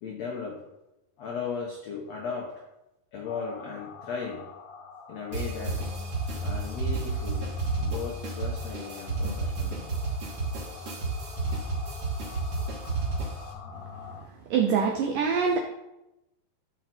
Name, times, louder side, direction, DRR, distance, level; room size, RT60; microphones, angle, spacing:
voice 1, 0.0-0.6 1.2-2.6 3.1-4.5 5.1-5.8 6.4-7.5 7.8-9.9, left 5 dB, 80° left, 0 dB, 1.5 m, -36 dB
sound 1, 3.2-14.2, left 4 dB, 60° left, 2.0 m, -41 dB
sound 2, 5.3-13.5, right 3 dB, 50° right, 3.7 m, -32 dB
voice 2, 14.5-15.6, right 6 dB, 75° right, 3 dB, 2.0 m, -24 dB
12.0 x 6.0 x 4.5 m, 0.93 s
omnidirectional pair, 4.6 m